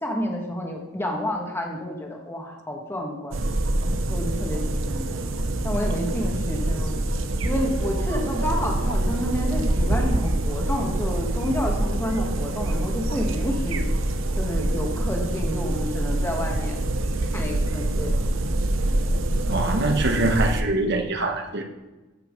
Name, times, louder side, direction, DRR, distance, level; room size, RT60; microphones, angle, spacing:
voice 1, 0.0-3.4 4.1-5.2 5.6-7.0 7.4-13.9 14.4-16.8 17.3-18.2, equal, 10° left, 1 dB, 1.7 m, -29 dB
sound 1, 3.3-20.6, right 1 dB, 75° right, 0.9 m, -25 dB
voice 2, 19.5-21.6, right 2 dB, 55° right, 4 dB, 1.5 m, -24 dB
14.5 x 6.0 x 5.3 m, 1.1 s
head